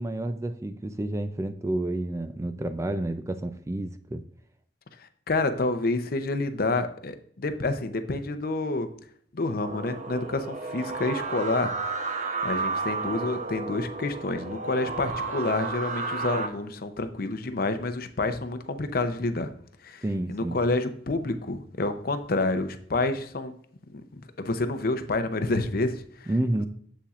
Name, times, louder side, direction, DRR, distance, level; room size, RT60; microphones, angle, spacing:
voice 1, 0.0-4.2 20.0-20.6 26.3-26.7, right 1 dB, 15° right, 9 dB, 0.4 m, -30 dB
voice 2, 5.3-8.9 9.3-11.8 12.4-19.5 19.8-23.5 23.9-26.3, left 2 dB, 55° left, 9 dB, 0.7 m, -28 dB
sound 1, 9.6-16.5, right 4 dB, 45° right, 0.8 m, -32 dB
7.5 x 7.0 x 2.4 m, 0.63 s
head